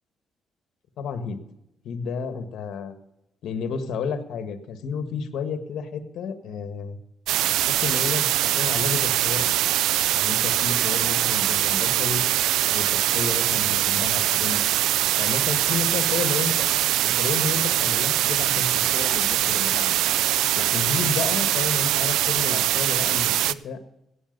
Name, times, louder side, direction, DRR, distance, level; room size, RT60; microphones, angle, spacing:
voice 1, 1.0-1.4 1.8-3.0 3.4-7.0 7.7-9.5 10.1-12.2 12.6-14.6 15.2-16.7 17.0-19.9 20.5-23.8, left 5 dB, 75° left, 9 dB, 1.5 m, -31 dB
sound 1, 7.3-23.5, right 13 dB, 90° right, 0.4 m, -22 dB
16.0 x 8.5 x 5.3 m, 0.86 s
cardioid pair, 90°, 0 cm